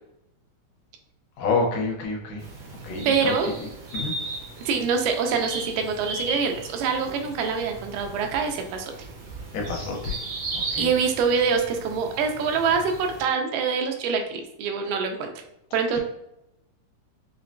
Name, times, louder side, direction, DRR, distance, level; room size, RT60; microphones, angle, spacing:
voice 1, 1.4-2.4 2.8-3.3 3.9-4.1 9.5-10.2 10.5-10.9, left 3 dB, 85° left, 0 dB, 2.3 m, -28 dB
sound 1, 2.4-13.2, right 3 dB, 60° right, 2.0 m, -36 dB
voice 2, 3.1-3.5 4.7-8.9 10.8-15.3 15.7-16.0, right 5 dB, 85° right, 4 dB, 2.1 m, -25 dB
5.5 x 2.1 x 2.5 m, 0.85 s
omnidirectional pair, 3.8 m